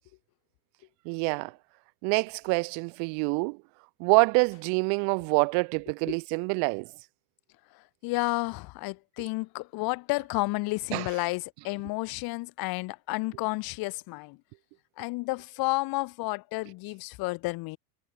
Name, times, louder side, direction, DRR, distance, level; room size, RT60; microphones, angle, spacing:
voice 1, 1.1-1.5 2.0-3.6 4.0-6.9 10.9-11.1, right 40 dB or more, 55° right, 2.4 m, -26 dB
voice 2, 7.7-14.4 15.0-17.8, left 23 dB, 50° left, 3.1 m, -31 dB
hypercardioid pair, 115°, 46 cm